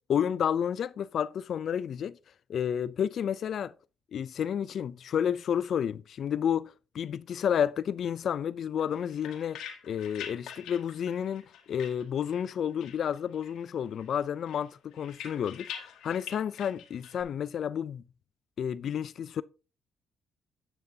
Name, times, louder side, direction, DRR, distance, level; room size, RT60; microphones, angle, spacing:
voice 1, 0.1-2.2 2.5-3.7 4.1-11.4 11.7-15.7 16.0-18.0 18.6-19.4, left 8 dB, 60° left, 0.3 m, -31 dB
sound 1, 8.8-12.5 12.8-13.7 14.0-17.2, left 8 dB, 85° left, 2.0 m, -45 dB
10.5 x 8.9 x 2.7 m
cardioid pair, 90°, 0 cm